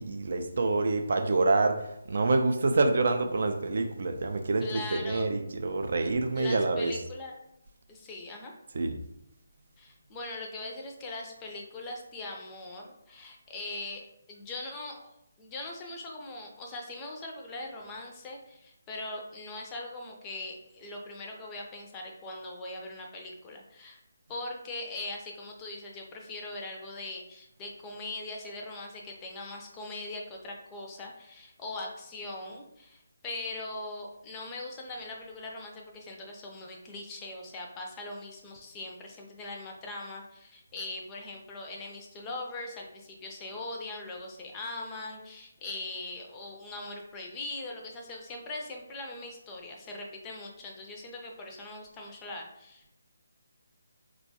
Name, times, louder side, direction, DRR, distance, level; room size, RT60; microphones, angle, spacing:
voice 1, 0.0-6.9 8.7-9.0, right 3 dB, 50° right, 6 dB, 0.3 m, -27 dB
voice 2, 4.6-5.3 6.4-7.3 7.9-8.5 9.8-15.1 15.4-24.0 24.3-52.9, left 2 dB, 15° left, 1 dB, 0.5 m, -41 dB
4.1 x 2.2 x 2.8 m, 0.81 s
figure-of-eight pair, 145°, 0 cm